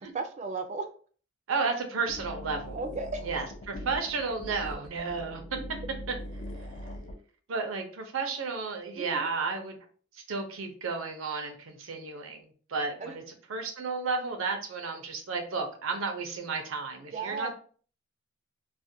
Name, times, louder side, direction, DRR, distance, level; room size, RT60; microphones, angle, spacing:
voice 1, 0.1-0.9 2.7-3.2 9.0-9.3 13.0-13.1 17.1-17.5, right 4 dB, 35° right, 7 dB, 0.3 m, -34 dB
voice 2, 1.5-2.8 3.2-5.4 6.1-6.2 7.5-9.8 10.1-13.2 13.5-17.5, right 4 dB, 90° right, 5 dB, 0.6 m, -32 dB
sound 1, 2.1-7.2, left 1 dB, 40° left, 0.3 m, -41 dB
2.4 x 2.1 x 2.6 m, 0.43 s
head